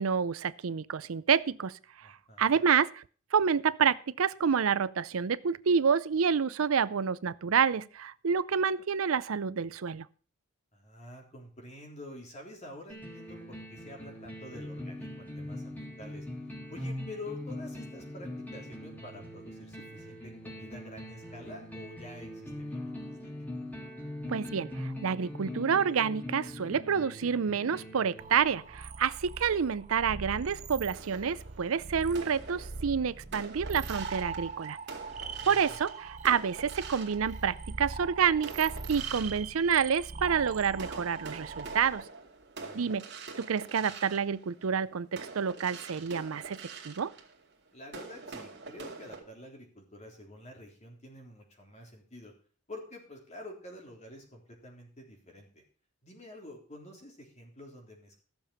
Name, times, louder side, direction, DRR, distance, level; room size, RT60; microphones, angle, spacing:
voice 1, 0.0-1.8 2.0-2.1 2.4-3.0 3.3-10.1 24.3-34.8 35.5-42.0 42.7-43.0 43.4-46.6 46.8-47.1, right 6 dB, 90° right, 17 dB, 0.5 m, -28 dB
voice 2, 2.0-2.7 10.7-16.3 16.7-23.3 35.1-35.8 42.6-42.9 47.7-52.3 52.7-55.6 56.0-58.2, left 1 dB, 35° left, 1 dB, 3.7 m, -48 dB
sound 1, 12.9-28.8, left 1 dB, 10° left, 3.1 m, -42 dB
sound 2, 28.2-42.0, right 4 dB, 35° right, 0.7 m, -41 dB
sound 3, 30.9-37.9 38.4-40.4 40.7-49.2, right 4 dB, 55° right, 2.2 m, -46 dB
15.0 x 6.9 x 5.8 m, 0.41 s
head